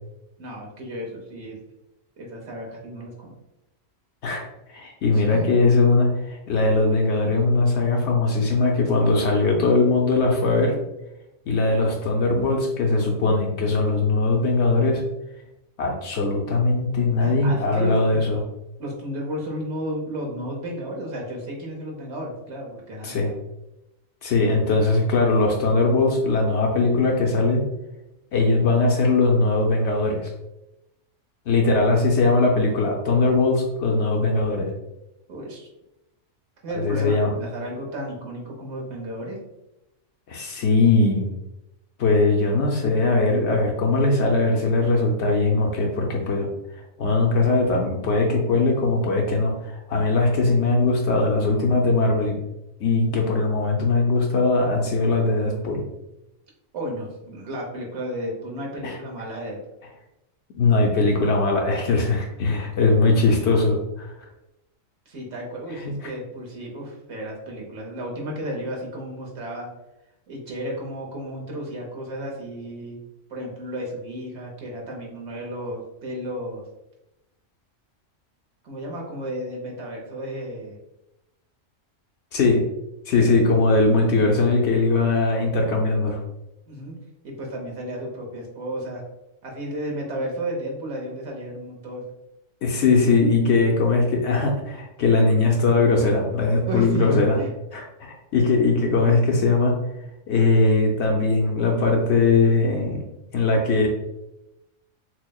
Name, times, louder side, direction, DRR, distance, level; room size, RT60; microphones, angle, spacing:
voice 1, 0.4-1.6 2.2-3.3 5.1-5.6 17.2-18.2 18.8-23.1 35.3-35.7 36.6-39.4 56.7-59.6 65.1-69.7 70.3-73.0 73.3-76.6 78.6-80.8 86.7-87.0 87.2-89.0 89.4-92.1 96.7-97.5, equal, 60° right, -1 dB, 1.1 m, -33 dB
voice 2, 4.7-10.7 11.5-15.0 15.8-18.4 23.0-23.3 24.2-27.6 28.3-30.3 31.5-34.7 36.8-37.3 40.3-41.2 42.0-46.5 47.0-52.4 52.8-55.8 58.8-59.0 60.5-64.1 65.8-66.1 82.3-82.6 83.1-86.2 92.6-97.4 97.7-99.7 100.3-103.0 103.3-103.9, left 3 dB, 65° left, 1 dB, 0.8 m, -20 dB
6.1 x 2.1 x 2.3 m, 0.92 s
omnidirectional pair, 1.4 m